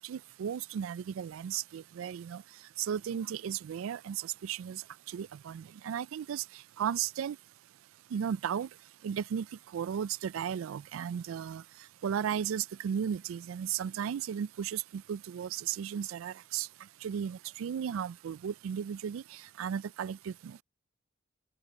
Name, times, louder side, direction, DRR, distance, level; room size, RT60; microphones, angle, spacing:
voice 1, 0.0-2.4 2.8-4.8 5.1-6.4 6.8-7.4 8.1-8.7 9.0-9.5 9.7-11.6 12.0-16.7 17.0-19.2 19.6-20.6, right 8 dB, 90° right, 0.3 m, -35 dB
open air
head